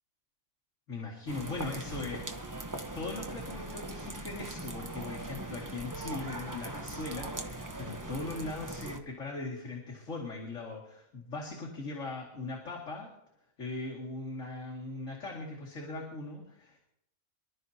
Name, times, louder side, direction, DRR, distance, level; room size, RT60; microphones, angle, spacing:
voice 1, 0.9-2.2 2.9-10.8 11.1-13.1 13.6-16.9, left 3 dB, 75° left, -4 dB, 2.7 m, -39 dB
sound 1, 1.3-9.0, right 2 dB, 15° right, 0.9 m, -40 dB
27.0 x 12.0 x 2.9 m, 0.81 s
omnidirectional pair, 1.3 m